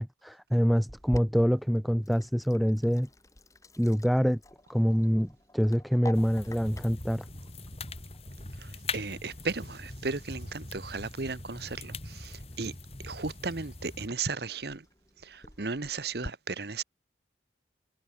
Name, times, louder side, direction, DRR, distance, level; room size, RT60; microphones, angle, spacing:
voice 1, 0.0-3.1 3.8-4.4 4.7-7.2, equal, ahead, 0.4 m, -26 dB
Sink (filling or washing), 0.9-16.3, left 1 dB, 15° left, 3.4 m, -49 dB
sound 1, 6.1-14.1, left 3 dB, 35° left, 4.0 m, -42 dB
voice 2, 8.9-11.9 12.6-12.7 13.0-14.8 15.6-16.8, right 4 dB, 60° right, 1.1 m, -34 dB
head